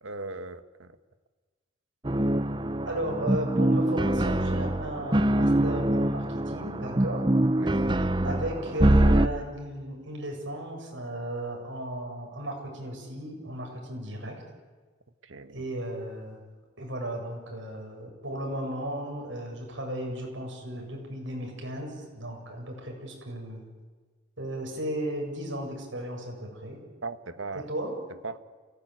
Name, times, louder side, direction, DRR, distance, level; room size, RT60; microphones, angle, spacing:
voice 1, 0.0-1.0 7.6-7.9 15.2-15.6 27.0-27.7 28.2-28.4, right 3 dB, 90° right, 1.5 m, -38 dB
sound 1, 2.0-9.3, right 1 dB, 25° right, 0.7 m, -24 dB
voice 2, 2.8-7.3 7.7-7.8 8.2-14.4 15.5-16.4 16.8-23.6 24.4-26.8 27.5-27.9, right 1 dB, 75° right, 7.8 m, -35 dB
29.5 x 17.0 x 9.3 m
head